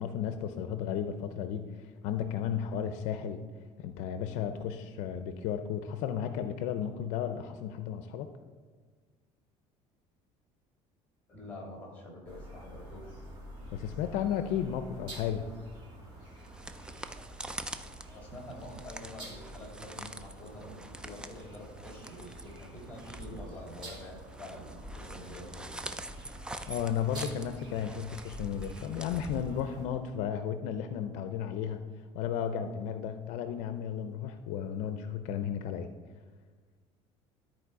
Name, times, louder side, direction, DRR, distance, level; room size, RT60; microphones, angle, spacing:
voice 1, 0.0-3.4 3.8-8.3 13.7-15.5 26.7-31.8 32.1-35.9, left 8 dB, 75° left, 9 dB, 0.6 m, -34 dB
voice 2, 11.3-13.1 18.1-25.6, left 1 dB, 15° left, -2 dB, 2.9 m, -46 dB
sound 1, 12.2-29.8, right 1 dB, 40° right, 2.4 m, -48 dB
sound 2, 16.3-30.0, right 1 dB, 5° right, 0.4 m, -45 dB
13.0 x 4.4 x 4.7 m, 1.5 s
cardioid pair, 150°, 12 cm